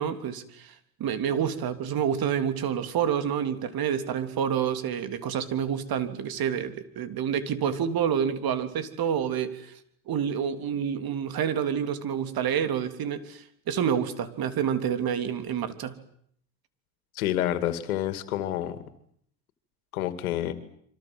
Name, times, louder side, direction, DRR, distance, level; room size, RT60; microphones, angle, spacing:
voice 1, 0.0-9.8 10.1-16.0, right 8 dB, 60° right, 10 dB, 3.4 m, -28 dB
voice 2, 17.1-18.8 19.9-20.5, left 12 dB, 90° left, 12 dB, 2.5 m, -28 dB
27.5 x 25.0 x 7.8 m, 0.66 s
hypercardioid pair, 65°, 42 cm